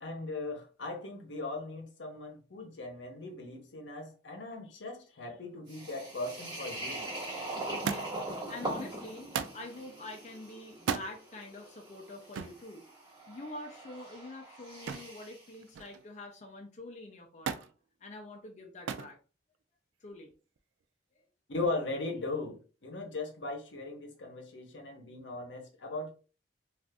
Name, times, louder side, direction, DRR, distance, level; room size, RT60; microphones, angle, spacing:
voice 1, 0.0-7.1 21.5-26.1, left 2 dB, 75° left, 0.8 m, -38 dB
sound 1, 5.7-15.5, right 2 dB, 25° right, 1.4 m, -42 dB
voice 2, 7.8-9.3 9.5-12.8 13.3-17.7 18.0-19.2 20.0-20.3, left 2 dB, 40° left, 0.5 m, -46 dB
Thump thud, 7.8-8.3 9.3-9.6 10.7-11.1 12.3-12.6 14.9-15.2 15.5-16.1 17.5-17.7 18.9-19.1 20.1-20.6 21.5-21.6, right 7 dB, 85° right, 0.3 m, -35 dB
2.5 x 2.4 x 3.4 m
head